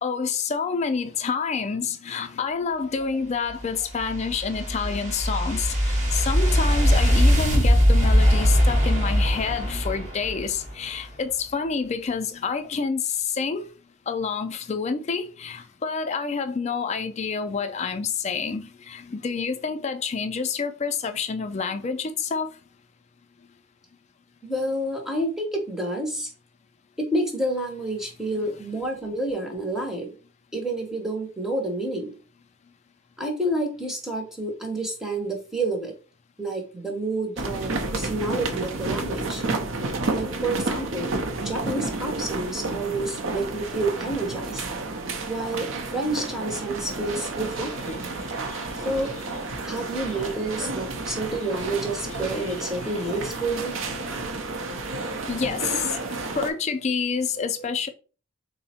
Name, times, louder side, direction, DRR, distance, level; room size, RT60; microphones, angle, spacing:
voice 1, 0.0-13.7 14.1-22.5 47.6-49.4 50.0-50.3 52.0-54.4 55.3-56.0 56.3-57.9, left 5 dB, 35° left, 0.3 m, -29 dB
sound 1, 3.5-10.8, equal, 35° right, 0.9 m, -21 dB
voice 2, 24.4-26.3 27.0-30.1 30.5-32.1 33.2-35.9 36.4-39.4 40.1-44.6 45.3-48.0 48.8-49.1 49.6-53.8 55.9-56.0, right 1 dB, ahead, 0.7 m, -29 dB
sound 2, 37.4-56.5, right 3 dB, 65° right, 0.6 m, -31 dB
3.7 x 2.0 x 4.1 m
head